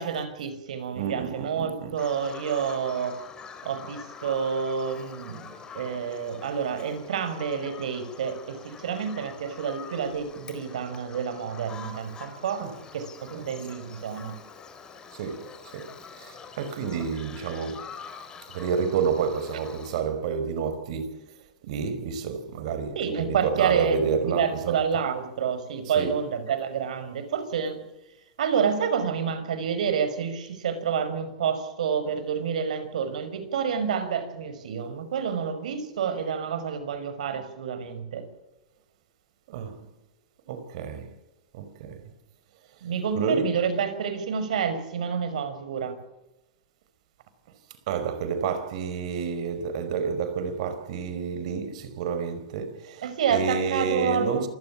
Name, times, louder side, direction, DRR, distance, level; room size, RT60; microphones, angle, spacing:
voice 1, 0.0-3.2 3.6-12.7 12.9-13.1 13.5-14.3 23.0-27.8 28.4-38.2 42.8-46.0 53.0-54.5, right 7 dB, 85° right, 5.8 m, -28 dB
voice 2, 0.9-2.0 12.6-12.7 13.3-13.5 15.1-17.9 18.5-21.3 21.6-24.8 25.9-26.2 39.5-39.9 40.5-41.2 41.5-42.0 43.1-43.5 47.9-54.5, right 6 dB, 65° right, 5.0 m, -30 dB
Bird vocalization bird call bird song, 1.9-20.0, left 6 dB, 20° left, 4.4 m, -45 dB
27.5 x 17.0 x 7.5 m
supercardioid pair, 140°, 4 cm